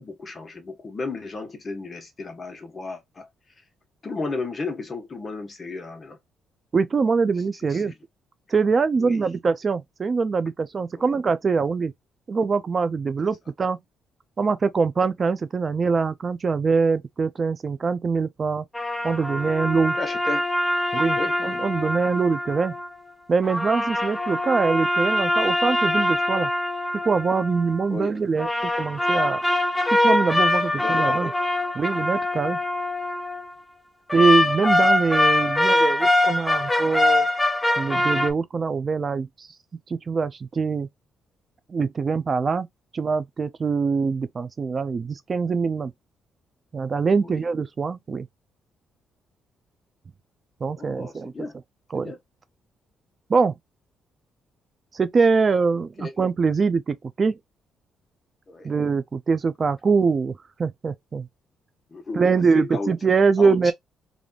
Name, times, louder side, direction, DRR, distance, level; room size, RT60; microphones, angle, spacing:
voice 1, 0.0-3.3 4.0-6.2 7.6-7.9 9.0-9.2 19.9-20.5 21.2-21.4 27.9-28.1 30.7-31.3 47.2-47.4 50.8-51.5 52.0-52.2 56.0-56.1 58.5-58.7 61.9-62.9 63.4-63.7, left 3 dB, 30° left, 1.1 m, -33 dB
voice 2, 6.7-7.9 8.5-11.9 12.3-13.8 14.4-18.6 19.0-20.0 20.9-22.7 23.3-26.5 27.0-29.4 30.0-31.3 31.8-32.6 34.1-37.3 37.8-39.5 39.9-40.9 41.7-42.7 42.9-45.9 46.7-48.3 50.6-51.3 51.9-52.1 53.3-53.5 54.9-57.3 58.6-60.3 60.6-61.3 62.2-63.7, right 5 dB, 40° right, 0.4 m, -23 dB
sound 1, 18.7-22.9 23.4-27.8 28.4-33.4 34.1-38.3, left 1 dB, 10° left, 0.6 m, -23 dB
3.3 x 2.5 x 2.3 m
cardioid pair, 90°, 0 cm